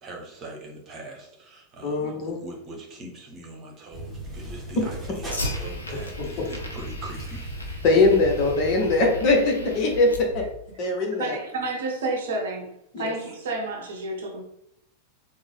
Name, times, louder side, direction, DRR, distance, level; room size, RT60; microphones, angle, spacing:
voice 1, 0.0-7.5, right 1 dB, 30° right, 0 dB, 1.1 m, -42 dB
voice 2, 1.8-2.4 6.2-6.3 7.8-10.4 10.8-11.4 12.9-13.1, left 3 dB, 40° left, 1 dB, 0.9 m, -21 dB
sound 1, 3.9-9.0, right 1 dB, 10° right, 1.3 m, -37 dB
Fire, 4.5-10.5, left 2 dB, 80° left, 0.6 m, -37 dB
voice 3, 11.2-12.7 13.0-14.4, right 2 dB, 60° right, 2 dB, 0.7 m, -30 dB
3.6 x 2.2 x 3.4 m, 0.78 s
figure-of-eight pair, 90°, 0 cm